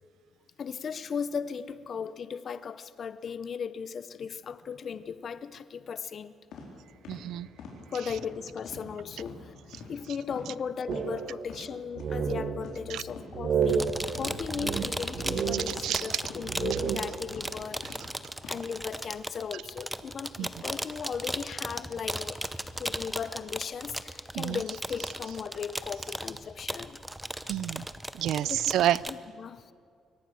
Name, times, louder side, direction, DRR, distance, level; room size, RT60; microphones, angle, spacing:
voice 1, 0.6-6.3 7.9-17.9 18.5-27.0 28.4-28.7 29.1-29.7, left 6 dB, 40° left, 14 dB, 0.7 m, -37 dB
sound 1, 6.5-6.7 7.0-7.2 7.6-7.8 8.1-8.3 8.6-8.9 9.2-9.3 9.7-9.9 10.3-10.5 10.8-11.0 11.4-11.6 12.0-12.1 12.6-12.8 13.1-13.3 13.6-13.8 14.1-14.3 14.7-14.8 15.2-15.3 15.7-15.9 16.2-16.4 16.8-16.9 17.3-17.4 17.8-18.0 18.4-18.5, left 6 dB, 80° left, 4.3 m, -45 dB
voice 2, 7.1-7.5 12.9-13.0 15.7-16.2 20.4-20.5 24.3-24.6 27.5-27.9 28.1-29.0, right 12 dB, 80° right, 20 dB, 0.4 m, -29 dB
sound 2, 10.9-11.7 12.0-12.9 13.3-16.1 16.4-17.4, right 6 dB, 50° right, 1.3 m, -31 dB
sound 3, 13.7-29.2, right 1 dB, 5° right, 0.7 m, -37 dB
23.5 x 18.5 x 6.4 m, 2.2 s
cardioid pair, 145°, 0 cm